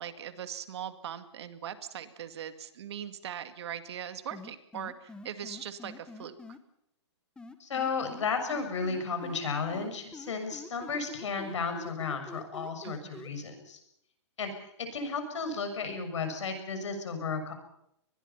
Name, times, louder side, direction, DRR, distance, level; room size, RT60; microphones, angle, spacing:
voice 1, 0.0-6.4 12.8-13.3, right 9 dB, 65° right, 10 dB, 2.2 m, -40 dB
sound 1, 4.3-6.6 7.4-9.4 9.7-13.3, left 3 dB, 5° left, 1.3 m, -46 dB
voice 2, 7.6-13.8 14.4-17.5, left 4 dB, 80° left, 7 dB, 6.6 m, -33 dB
25.0 x 21.0 x 5.8 m, 0.74 s
hypercardioid pair, 145°, 15 cm